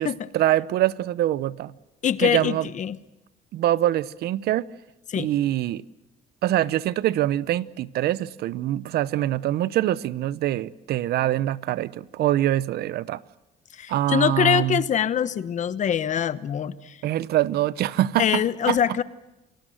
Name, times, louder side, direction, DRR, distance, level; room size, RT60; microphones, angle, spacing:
voice 1, 0.3-1.7 2.2-2.7 3.5-4.7 5.2-5.8 6.4-13.2 13.9-14.8 17.0-18.8, right 13 dB, 70° right, 0.8 m, -24 dB
voice 2, 2.0-3.0 5.1-5.3 13.7-17.0 18.2-19.0, left 9 dB, 45° left, 1.1 m, -24 dB
28.0 x 18.5 x 7.7 m
cardioid pair, 110°, 17 cm